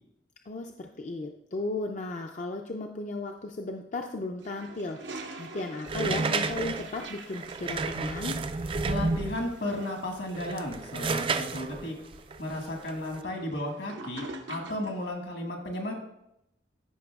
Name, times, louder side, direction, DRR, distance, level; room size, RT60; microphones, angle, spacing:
voice 1, 0.5-8.4, left 2 dB, 40° left, 3 dB, 0.4 m, -35 dB
Toilet flush, 4.4-15.1, right 3 dB, 85° right, 0.9 m, -47 dB
sound 1, 5.9-9.5 10.2-13.2, right 3 dB, 30° right, 0.3 m, -31 dB
voice 2, 8.9-11.9 12.4-15.9, left 1 dB, 75° left, 1 dB, 1.7 m, -34 dB
14.0 x 5.3 x 2.4 m, 0.81 s
head